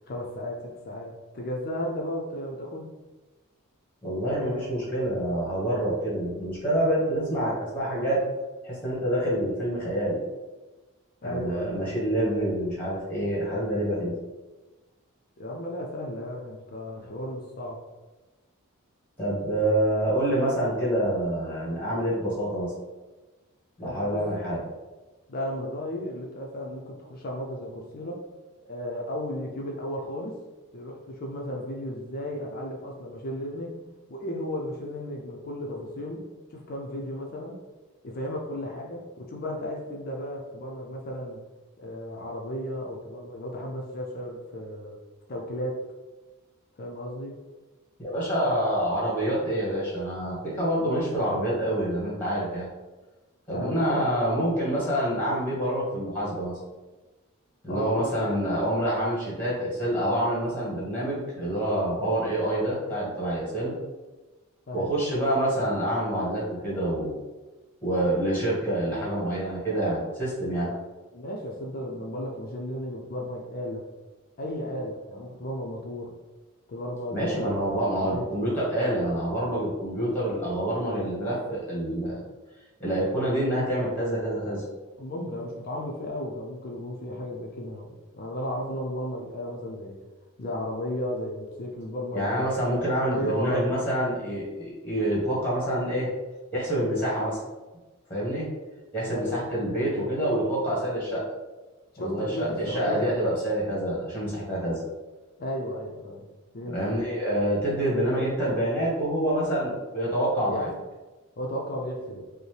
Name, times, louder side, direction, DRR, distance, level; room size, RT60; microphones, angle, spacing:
voice 1, 0.1-2.9 11.2-11.8 15.4-17.8 23.8-24.3 25.3-28.2 28.6-30.4 30.7-33.8 34.1-36.2 36.5-37.6 38.0-41.4 41.8-45.0 45.3-45.8 46.8-47.4 53.5-54.1 57.7-58.1 64.7-64.9 70.7-70.9 71.1-73.9 74.4-76.2 76.7-78.3 85.0-90.0 90.4-92.6 93.1-93.7 99.0-99.6 101.9-103.1 105.4-106.3 106.5-106.9 110.5-110.6 111.4-112.2, equal, 45° left, -1 dB, 0.5 m, -34 dB
voice 2, 4.0-8.2 8.6-10.2 11.2-14.1 19.2-22.7 23.8-24.6 48.0-52.7 53.5-56.6 57.6-63.7 64.7-67.1 67.8-70.7 77.1-82.2 82.8-84.6 92.1-96.1 96.5-97.4 98.1-98.5 98.9-101.2 102.0-104.8 106.7-110.7, right 1 dB, 10° left, -6 dB, 1.4 m, -27 dB
5.2 x 2.1 x 3.2 m, 1.2 s
head